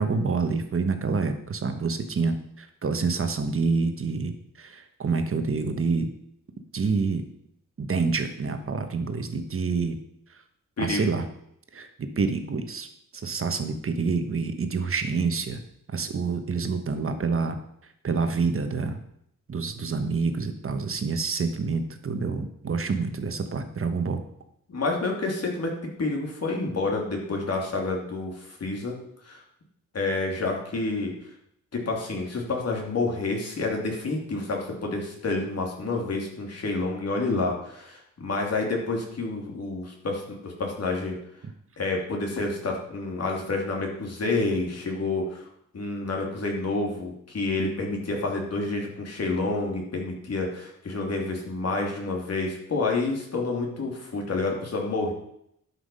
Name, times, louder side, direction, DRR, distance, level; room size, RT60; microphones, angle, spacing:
voice 1, 0.0-6.1 6.7-7.2 7.8-10.0 10.8-11.3 11.7-12.9 13.1-15.6 15.9-17.6 18.0-19.0 19.5-24.2, right 4 dB, 40° right, 7 dB, 1.2 m, -27 dB
voice 2, 24.7-29.0 29.2-29.4 29.9-31.1 31.7-41.2 41.8-45.5 45.7-55.1, left 3 dB, 50° left, 0 dB, 2.9 m, -29 dB
11.5 x 6.0 x 5.5 m, 0.73 s
wide cardioid pair, 120°, 33 cm